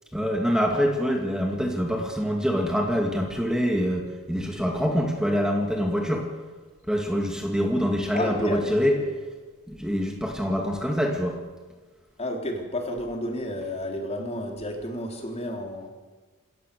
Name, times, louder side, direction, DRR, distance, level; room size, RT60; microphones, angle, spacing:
voice 1, 0.1-6.3 6.9-9.0 9.7-11.4, equal, 5° right, 1 dB, 2.3 m, -25 dB
voice 2, 8.1-9.1 12.2-15.9, left 1 dB, 30° left, 2 dB, 3.5 m, -31 dB
27.0 x 14.5 x 6.8 m, 1.3 s
head